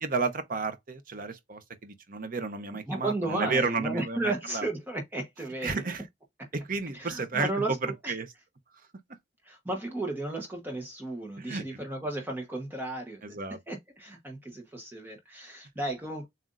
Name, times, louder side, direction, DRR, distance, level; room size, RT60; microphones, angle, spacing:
voice 1, 0.0-4.7 5.6-6.0 6.5-7.8 8.1-8.3 11.4-11.7 13.2-13.6, right 4 dB, 50° right, 0.8 m, -32 dB
voice 2, 2.9-5.8 6.4-6.5 6.9-7.8 8.0-8.1 9.4-13.4 13.7-16.3, right 2 dB, 10° right, 1.1 m, -34 dB
7.4 x 2.6 x 2.5 m
head